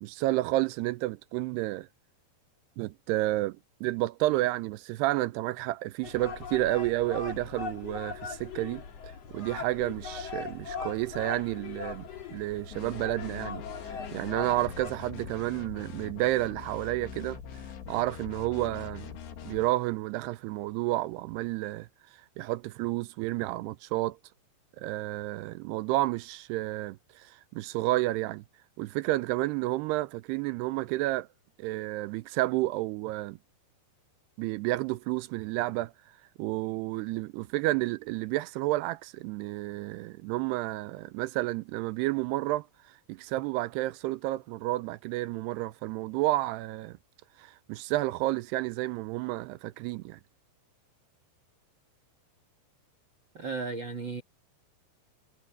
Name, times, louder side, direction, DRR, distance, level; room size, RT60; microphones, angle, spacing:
voice 1, 0.0-1.9 2.8-17.4 17.9-19.1 19.5-21.9 22.4-24.2 24.8-28.4 28.8-31.3 31.6-33.4 34.4-35.9 36.4-42.7 43.1-47.0 47.4-50.2, right 18 dB, 85° right, 2.6 m, -31 dB
sound 1, 6.0-14.9, left 6 dB, 45° left, 2.9 m, -40 dB
sound 2, 12.7-19.8, left 7 dB, 85° left, 4.5 m, -43 dB
voice 2, 53.3-54.2, right 4 dB, 55° right, 1.3 m, -34 dB
omnidirectional pair, 4.9 m